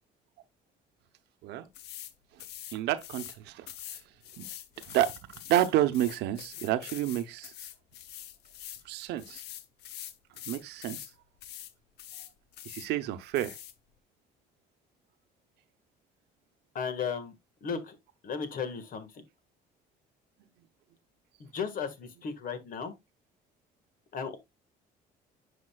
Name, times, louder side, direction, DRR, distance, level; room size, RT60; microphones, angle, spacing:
sound 1, 1.7-2.1 2.4-3.4 3.7-8.8 9.2-11.1 11.4-11.7 12.0-12.9 13.3-13.7, left 11 dB, 80° left, 0.8 m, -44 dB
voice 1, 2.7-3.7 3.9-4.0 4.4-4.5 4.8-5.1 5.5-7.5 8.8-9.4 10.5-11.1 12.6-13.6, right 13 dB, 85° right, 0.8 m, -29 dB
voice 2, 16.7-17.3 17.6-18.0 18.2-19.2 21.4-22.9 24.1-24.4, left 6 dB, 55° left, 1.6 m, -35 dB
9.7 x 5.3 x 2.3 m
cardioid pair, 110°, 17 cm